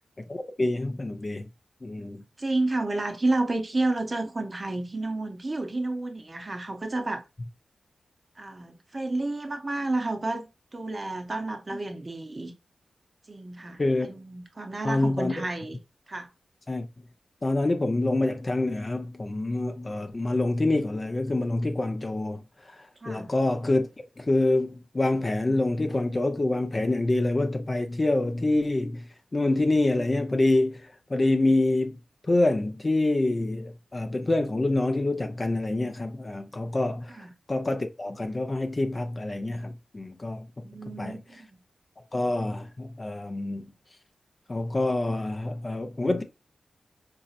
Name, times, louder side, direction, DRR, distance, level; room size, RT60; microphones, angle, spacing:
voice 1, 0.3-1.5 1.8-2.2 13.8-14.1 14.8-15.3 16.7-16.9 17.4-23.9 24.2-32.0 32.3-37.2 37.5-40.4 41.0-41.2 42.1-43.7 44.5-46.2, left 2 dB, 30° left, 0.6 m, -26 dB
voice 2, 2.4-7.2 8.4-12.5 13.3-15.8 16.1-16.3 23.0-23.3 37.1-37.3 40.6-41.6, right 2 dB, 35° right, 0.7 m, -31 dB
4.0 x 2.8 x 2.3 m
wide cardioid pair, 85°, 0 cm